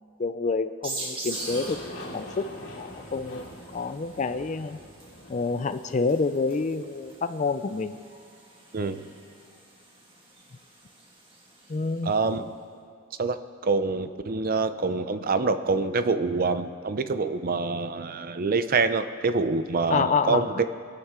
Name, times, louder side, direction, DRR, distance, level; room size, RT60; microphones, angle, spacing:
voice 1, 0.2-1.8 2.1-2.5 2.8-4.8 5.3-8.0 11.7-12.1 19.9-20.7, left 4 dB, 35° left, 10 dB, 0.4 m, -28 dB
sound 1, 0.8-12.2, right 2 dB, 25° right, 1.8 m, -43 dB
Aircraft, 1.3-8.0, left 1 dB, 65° left, 2.5 m, -44 dB
voice 2, 8.7-9.0 12.0-12.5 13.2-13.4 13.6-20.5, right 4 dB, 40° right, 10 dB, 0.6 m, -26 dB
24.5 x 9.1 x 3.7 m, 2.2 s
head